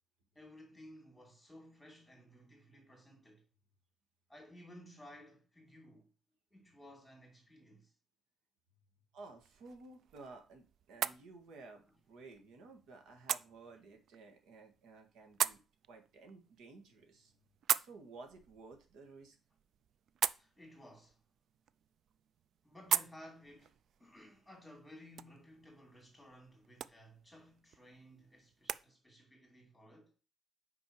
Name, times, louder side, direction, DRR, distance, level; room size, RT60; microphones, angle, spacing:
voice 1, 0.3-3.4 4.3-6.1 6.5-7.9 20.4-21.2 22.6-30.1, equal, 5° left, 2.6 m, -57 dB
voice 2, 9.1-15.6 15.9-17.3 17.8-19.4, right 3 dB, 80° right, 1.9 m, -54 dB
sound 1, 9.4-28.8, right 9 dB, 55° right, 0.3 m, -42 dB
5.9 x 5.2 x 6.4 m
cardioid pair, 170°, 0 cm